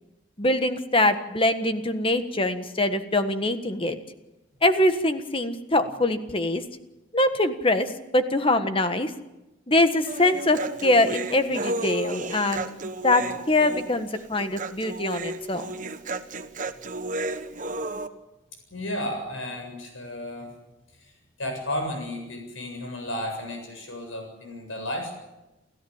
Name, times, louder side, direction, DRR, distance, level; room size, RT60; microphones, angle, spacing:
voice 1, 0.4-4.0 4.6-6.6 7.1-9.1 9.7-15.7, left 1 dB, 25° left, 9 dB, 1.4 m, -23 dB
Human voice, 10.1-18.1, right 2 dB, 40° right, 1.2 m, -33 dB
voice 2, 18.7-20.5 20.9-25.1, left 1 dB, 85° left, 4 dB, 7.7 m, -33 dB
29.0 x 14.0 x 8.8 m, 1.0 s
head